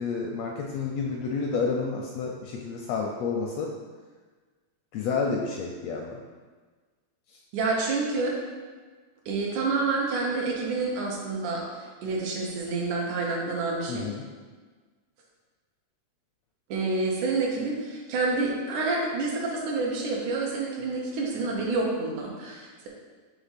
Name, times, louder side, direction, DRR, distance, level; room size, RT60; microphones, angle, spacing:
voice 1, 0.0-3.7 4.9-6.2 7.3-7.4 13.9-14.2, left 4 dB, 80° left, 0 dB, 1.5 m, -30 dB
voice 2, 7.5-8.4 9.3-11.6 12.0-14.1 16.7-22.9, right 3 dB, 85° right, -2 dB, 2.5 m, -28 dB
5.9 x 3.5 x 5.6 m, 1.4 s
omnidirectional pair, 3.4 m